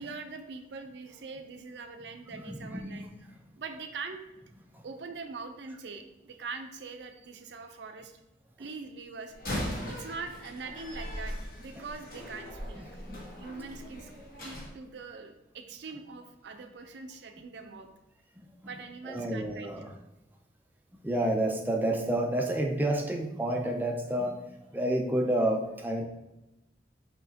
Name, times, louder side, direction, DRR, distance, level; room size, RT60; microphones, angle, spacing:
voice 1, 0.0-3.1 3.6-4.2 4.8-8.2 8.6-9.3 9.9-12.8 13.4-14.1 14.4-17.9 18.7-19.7, right 4 dB, 70° right, 7 dB, 0.5 m, -42 dB
voice 2, 2.3-3.4 4.7-4.8 9.8-10.0 12.8-13.3 18.4-19.9 21.0-26.0, right 1 dB, 10° right, 2 dB, 0.4 m, -30 dB
Slam, 9.3-14.7, equal, 50° left, 1.2 m, -39 dB
5.5 x 2.8 x 2.7 m, 0.97 s
head